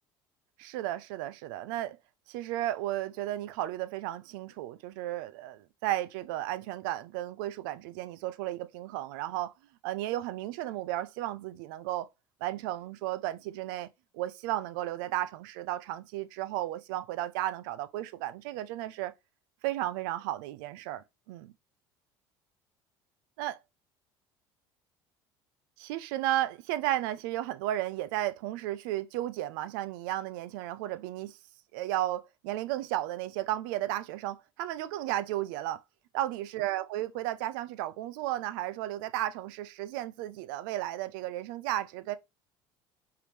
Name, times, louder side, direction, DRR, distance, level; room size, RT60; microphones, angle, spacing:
voice 1, 0.6-2.0 2.3-9.5 9.8-12.1 12.4-13.9 14.1-19.1 19.6-21.5 23.4-23.6 25.8-31.4 31.7-35.8 36.1-42.2, right 14 dB, 75° right, 0.5 m, -34 dB
4.7 x 3.5 x 3.2 m
hypercardioid pair, 70°, 11 cm